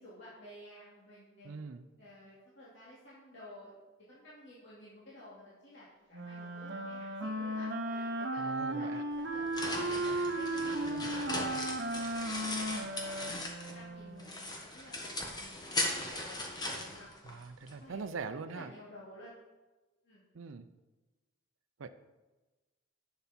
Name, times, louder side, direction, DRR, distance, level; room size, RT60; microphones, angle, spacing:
voice 1, 0.0-1.5 2.0-3.8 4.1-13.4 13.7-17.4 17.7-19.3 20.0-20.2, left 1 dB, 60° left, -8 dB, 2.5 m, -53 dB
voice 2, 1.4-1.9 8.4-9.0 10.9-11.1 17.2-18.7 20.3-20.7 21.8-21.9, right 4 dB, 75° right, 11 dB, 0.5 m, -42 dB
Wind instrument woodwind instrument, 6.1-14.3, right 1 dB, 60° right, 0.9 m, -36 dB
sound 1, 9.1-13.9 14.2-17.7, left 1 dB, 20° left, 1.3 m, -38 dB
10.5 x 7.0 x 4.3 m, 1.2 s
head